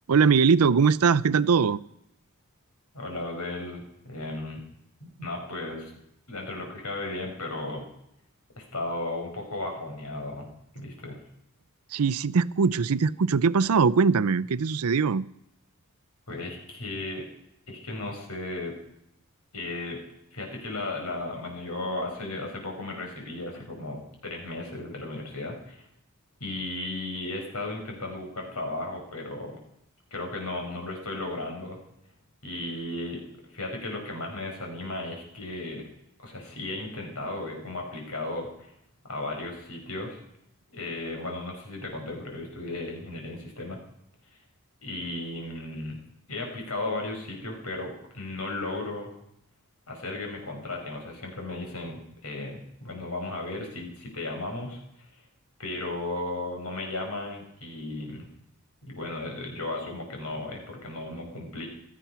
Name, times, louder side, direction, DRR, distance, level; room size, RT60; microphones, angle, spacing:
voice 1, 0.1-1.8 11.9-15.3, right 5 dB, 80° right, 17 dB, 0.5 m, -21 dB
voice 2, 2.9-4.6 5.0-5.9 6.3-7.9 8.6-11.2 16.3-17.2 17.7-18.7 19.5-20.0 20.3-25.9 26.4-29.6 30.1-31.8 32.4-33.2 33.5-35.8 36.2-38.7 39.0-40.2 40.7-43.8 44.8-46.0 46.3-49.1 49.9-54.8 55.6-58.3 58.8-61.7, left 2 dB, 90° left, 2 dB, 5.0 m, -35 dB
16.0 x 13.5 x 5.7 m, 0.77 s
head